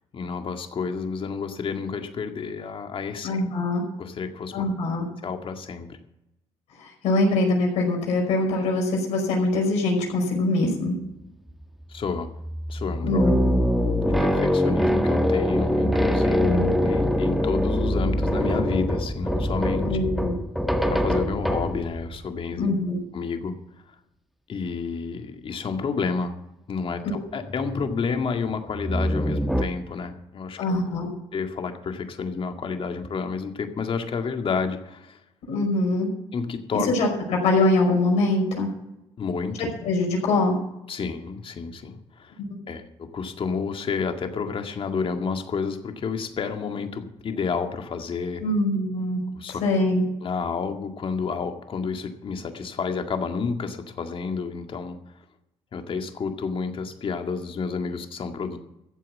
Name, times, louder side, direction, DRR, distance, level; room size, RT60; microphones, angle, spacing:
voice 1, 0.1-3.4 4.0-4.7 5.2-6.0 11.9-12.3 12.7-13.3 14.0-16.6 16.8-20.0 20.9-22.7 23.1-23.6 24.5-26.4 26.7-30.6 31.3-35.2 36.3-36.9 39.2-39.7 40.9-42.4 42.7-48.4 49.3-49.6 50.2-55.1 55.7-58.6, left 5 dB, 55° left, 6 dB, 2.0 m, -30 dB
voice 2, 3.2-3.8 4.5-5.1 6.8-11.0 13.0-13.6 16.4-16.8 19.9-20.3 22.6-22.9 27.1-27.2 30.6-31.1 35.5-36.1 36.8-38.7 39.8-40.6 42.4-42.6 48.4-49.2 49.5-50.0, left 2 dB, 80° left, 0 dB, 5.5 m, -23 dB
sound 1, 12.0-22.1 27.4-28.1 28.7-29.6, equal, ahead, 1.6 m, -24 dB
14.0 x 7.9 x 7.4 m, 0.89 s
supercardioid pair, 70°, 11 cm